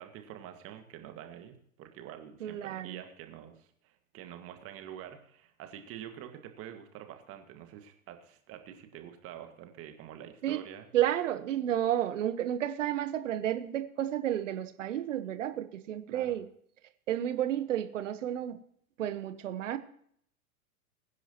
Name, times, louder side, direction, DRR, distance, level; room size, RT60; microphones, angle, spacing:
voice 1, 0.0-10.9 16.1-16.4, right 10 dB, 30° right, 6 dB, 1.9 m, -47 dB
voice 2, 2.4-3.0 10.4-10.6 10.9-16.4 17.1-18.6 19.0-19.8, right 11 dB, 55° right, 11 dB, 1.3 m, -31 dB
22.5 x 10.0 x 3.0 m, 0.66 s
figure-of-eight pair, 100°, 43 cm